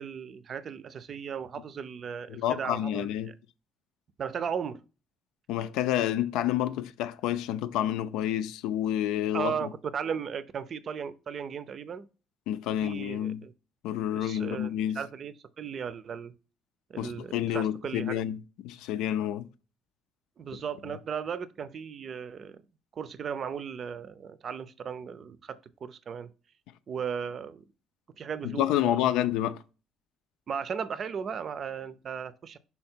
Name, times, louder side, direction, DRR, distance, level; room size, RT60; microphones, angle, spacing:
voice 1, 0.0-3.1 4.2-4.8 9.3-12.1 12.8-13.5 14.1-16.3 16.9-18.2 20.4-22.6 23.0-26.3 26.9-27.6 28.2-29.0 30.5-32.6, right 7 dB, 45° right, 0.5 m, -36 dB
voice 2, 2.3-3.3 5.5-9.7 12.5-13.4 13.8-15.0 17.0-19.5 28.4-29.6, left 12 dB, 90° left, 0.5 m, -29 dB
5.7 x 4.1 x 4.4 m
cardioid pair, 105°, 0 cm